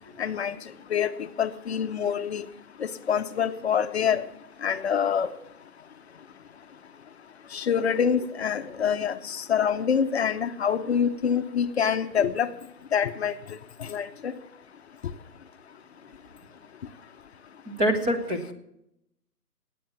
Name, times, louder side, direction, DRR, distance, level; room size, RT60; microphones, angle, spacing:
voice 1, 0.2-0.6 0.9-1.1 1.4-2.4 2.8-4.2 4.6-5.3 7.5-12.5 12.9-13.3 13.9-14.3, left 7 dB, 40° left, 9 dB, 0.8 m, -26 dB
voice 2, 17.8-18.5, equal, 10° right, 5 dB, 0.8 m, -25 dB
17.0 x 9.2 x 7.0 m, 0.80 s
figure-of-eight pair, 135°, 48 cm